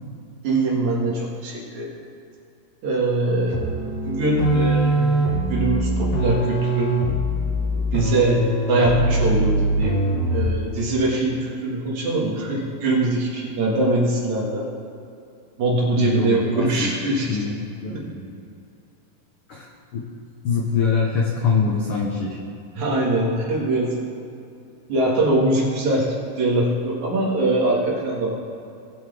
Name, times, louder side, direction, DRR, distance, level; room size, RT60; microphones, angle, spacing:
voice 1, 0.4-1.9 2.8-3.8 4.0-5.2 5.5-7.0 7.7-10.0 10.3-14.7 15.6-17.4 17.9-18.0 22.8-24.0 24.9-28.3, right 2 dB, 60° right, -3 dB, 3.0 m, -22 dB
sound 1, 3.5-10.7, right 1 dB, 50° left, 2.2 m, -22 dB
voice 2, 16.0-16.9 17.3-18.3 19.5-19.7 19.9-20.0 20.4-22.4, left 5 dB, 75° left, -1 dB, 1.3 m, -24 dB
20.0 x 7.9 x 3.5 m, 2.6 s
omnidirectional pair, 4.1 m